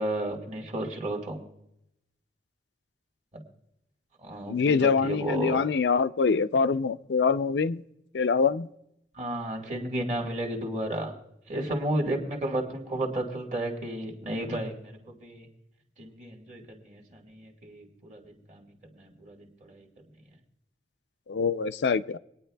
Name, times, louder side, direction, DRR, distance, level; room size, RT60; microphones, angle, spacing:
voice 1, 0.0-1.5 3.3-3.4 4.2-5.6 9.2-11.1 11.5-15.5 16.0-18.7 18.9-19.9, right 1 dB, 40° right, 0 dB, 1.6 m, -33 dB
voice 2, 4.5-7.8 8.1-8.7 21.3-22.2, left 5 dB, 80° left, 14 dB, 0.4 m, -24 dB
24.5 x 9.3 x 2.2 m, 0.82 s
head